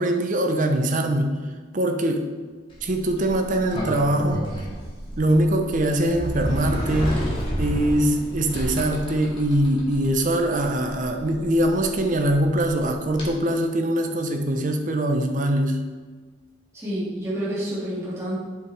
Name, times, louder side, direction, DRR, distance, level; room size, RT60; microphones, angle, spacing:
voice 1, 0.0-1.4 1.7-2.3 2.8-4.4 5.2-7.3 7.6-15.8, right 1 dB, 45° right, 4 dB, 0.8 m, -22 dB
Sliding door, 2.7-13.3, equal, 30° left, 2.2 m, -32 dB
voice 2, 16.7-18.4, right 1 dB, 15° right, -9 dB, 2.4 m, -28 dB
8.3 x 6.9 x 3.4 m, 1.5 s
head